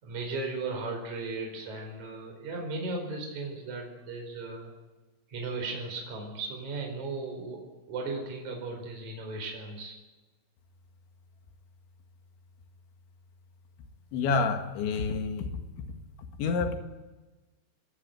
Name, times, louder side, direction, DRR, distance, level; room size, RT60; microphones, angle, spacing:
voice 1, 0.0-4.7 5.3-7.6 7.9-10.0, right 3 dB, 40° right, 1 dB, 5.9 m, -36 dB
voice 2, 14.1-15.9 16.2-16.8, left 4 dB, 75° left, 5 dB, 4.2 m, -29 dB
29.0 x 21.5 x 9.1 m, 1.2 s
omnidirectional pair, 5.4 m